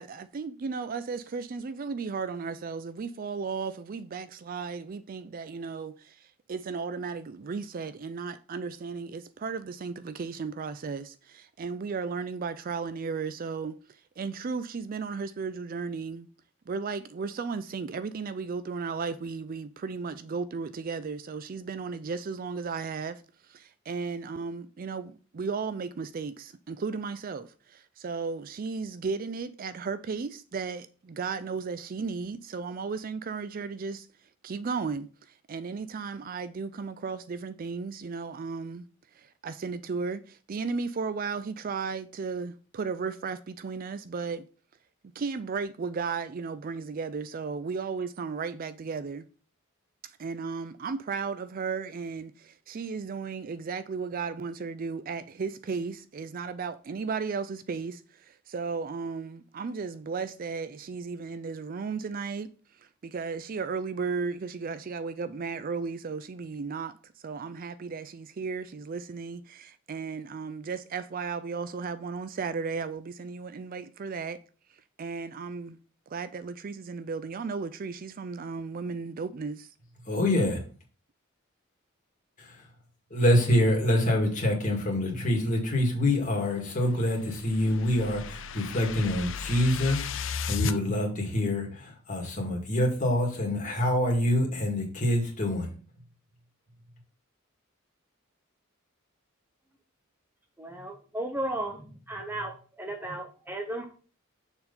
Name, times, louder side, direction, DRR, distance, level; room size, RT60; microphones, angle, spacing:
voice 1, 0.0-13.8 14.2-16.3 16.7-34.1 34.4-35.1 35.5-38.9 39.2-44.5 45.2-49.3 50.0-62.5 63.0-67.0 67.2-74.4 75.0-75.8 76.1-79.7, right 5 dB, 45° right, 0.4 m, -35 dB
voice 2, 80.1-80.6 82.4-82.6 83.1-95.7, left 1 dB, 40° left, 2.3 m, -26 dB
sound 1, 86.7-90.8, left 5 dB, 65° left, 0.5 m, -35 dB
voice 3, 100.6-102.5 102.8-103.9, right 1 dB, 10° right, 0.8 m, -34 dB
6.8 x 4.4 x 5.4 m
head